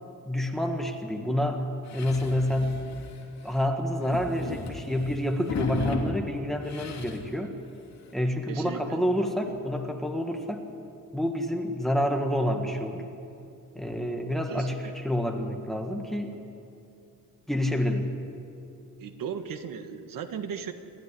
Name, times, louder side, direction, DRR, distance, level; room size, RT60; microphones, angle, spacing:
voice 1, 0.2-2.8 3.4-7.5 8.1-10.6 11.1-13.0 13.7-14.8 15.0-16.4 17.5-18.1, left 1 dB, ahead, 4 dB, 1.5 m, -28 dB
sound 1, 1.9-3.6 4.0-6.2 6.6-7.3 7.7-7.8 8.1-8.2 9.5-9.6, left 3 dB, 50° left, 2.8 m, -35 dB
voice 2, 8.5-9.0 14.5-14.9 19.0-20.7, right 7 dB, 75° right, 8 dB, 1.6 m, -36 dB
28.0 x 13.0 x 9.9 m, 2.7 s
wide cardioid pair, 180°, 34 cm